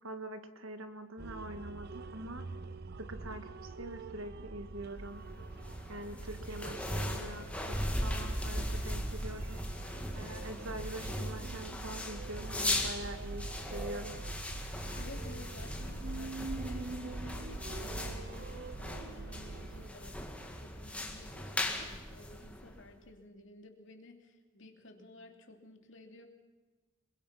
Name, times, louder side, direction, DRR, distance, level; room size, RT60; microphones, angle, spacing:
voice 1, 0.0-2.4 3.0-5.2 5.9-9.6 10.1-14.2, right 1 dB, 75° right, 8 dB, 2.0 m, -44 dB
sound 1, 1.2-19.9, right 3 dB, 50° right, 0.6 m, -44 dB
sound 2, 5.1-22.9, left 1 dB, 5° left, 2.2 m, -39 dB
voice 2, 14.9-26.3, left 2 dB, 65° left, 4 dB, 2.9 m, -53 dB
26.5 x 22.0 x 5.9 m, 1.2 s
head